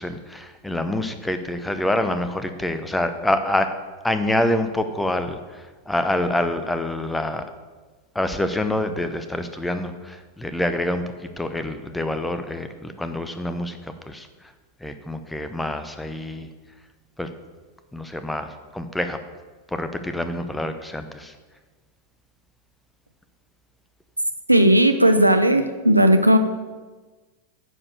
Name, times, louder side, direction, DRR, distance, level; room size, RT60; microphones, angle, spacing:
voice 1, 0.0-3.7 4.0-7.4 8.1-11.0 11.4-14.3 14.8-16.5 17.2-17.3 17.9-19.2 19.7-21.3, left 1 dB, 5° left, 9 dB, 0.7 m, -26 dB
voice 2, 24.5-26.4, right 1 dB, 85° right, 7 dB, 0.6 m, -16 dB
9.6 x 4.9 x 6.6 m, 1.3 s
figure-of-eight pair, 90°, 0 cm